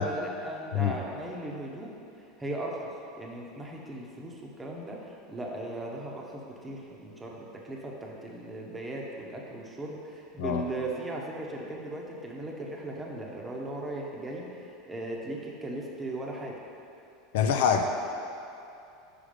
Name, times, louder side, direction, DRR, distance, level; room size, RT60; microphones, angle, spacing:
voice 1, 0.0-1.9 2.4-2.9 3.2-16.6, right 1 dB, 15° right, -2 dB, 0.8 m, -38 dB
voice 2, 17.3-17.8, left 7 dB, 80° left, 5 dB, 0.5 m, -25 dB
5.0 x 4.9 x 5.1 m, 2.7 s
supercardioid pair, 135°, 0 cm